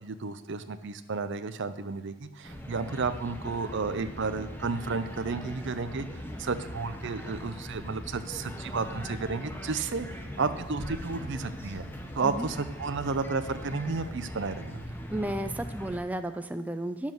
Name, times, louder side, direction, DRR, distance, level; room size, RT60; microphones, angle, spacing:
voice 1, 0.0-11.8 12.1-14.8, right 4 dB, 55° right, 11 dB, 0.6 m, -32 dB
sound 1, 2.4-16.0, equal, 10° left, 1.0 m, -40 dB
voice 2, 15.1-17.1, right 1 dB, 5° right, 7 dB, 0.4 m, -33 dB
10.5 x 7.3 x 6.1 m, 1.1 s
head